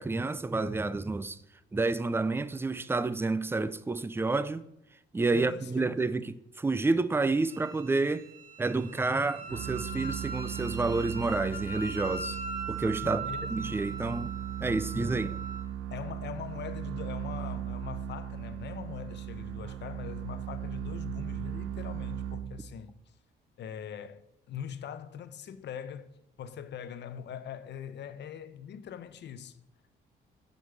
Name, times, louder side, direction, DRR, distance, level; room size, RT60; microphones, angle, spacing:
voice 1, 0.0-1.4 1.7-4.6 5.1-8.3 8.6-12.4 12.7-13.2 13.5-14.3 14.6-15.3, right 3 dB, 10° right, 0.4 m, -29 dB
voice 2, 5.3-6.3 13.0-13.8 15.2-15.4 15.9-23.0 23.6-29.6, left 8 dB, 60° left, 0.8 m, -42 dB
Wind instrument woodwind instrument, 7.5-15.7, right 3 dB, 45° right, 2.0 m, -40 dB
sound 1, 9.5-22.9, right 9 dB, 75° right, 0.7 m, -38 dB
7.8 x 5.3 x 6.8 m
cardioid pair, 90°, 20 cm